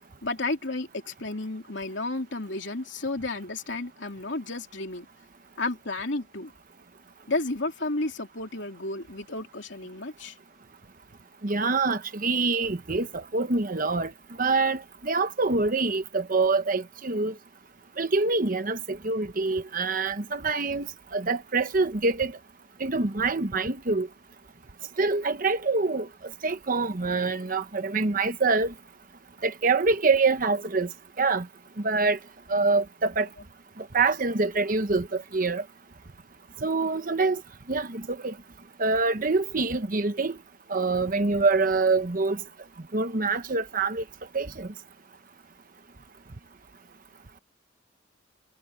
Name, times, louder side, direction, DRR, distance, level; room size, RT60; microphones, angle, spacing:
voice 1, 0.2-5.1 5.6-6.5 7.3-10.4, left 2 dB, 65° left, 3.4 m, -32 dB
voice 2, 11.4-14.1 14.4-17.3 18.0-20.9 21.1-22.4 22.8-24.1 25.0-26.1 26.4-28.7 29.4-30.9 31.2-31.5 31.8-32.2 32.5-33.3 33.8-35.6 36.6-37.4 37.7-38.3 38.8-40.4 40.7-42.4 42.9-44.0 44.3-44.7, right 3 dB, 45° right, 1.0 m, -25 dB
head